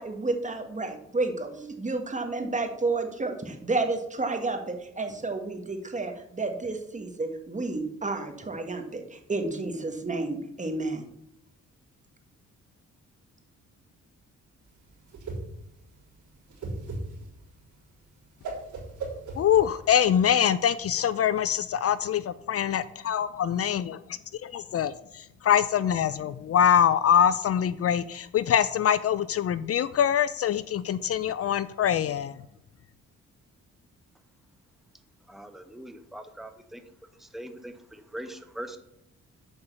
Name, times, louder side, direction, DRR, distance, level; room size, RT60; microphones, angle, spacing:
voice 1, 0.0-11.0, right 3 dB, 25° right, 5 dB, 1.7 m, -31 dB
Whoosh swoosh swish, 14.7-20.2, right 2 dB, 85° right, 4.0 m, -38 dB
voice 2, 19.3-24.0 24.4-32.4, left 9 dB, 55° left, 15 dB, 0.5 m, -24 dB
voice 3, 35.3-36.8 37.2-38.8, right 1 dB, ahead, 7 dB, 1.0 m, -41 dB
8.1 x 5.6 x 6.9 m, 0.79 s
cardioid pair, 95°, 29 cm